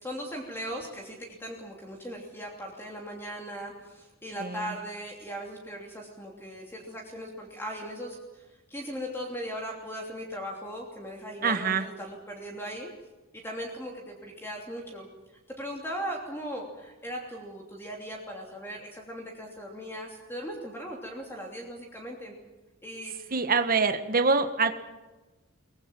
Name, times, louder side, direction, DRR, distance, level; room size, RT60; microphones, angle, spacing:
voice 1, 0.0-12.9 13.4-15.1 15.6-22.3 22.8-23.3, equal, 10° left, 0 dB, 3.0 m, -38 dB
voice 2, 4.4-4.7 11.4-11.9 23.3-24.7, right 4 dB, 40° right, 8 dB, 1.4 m, -25 dB
23.0 x 20.5 x 7.6 m, 1.1 s
head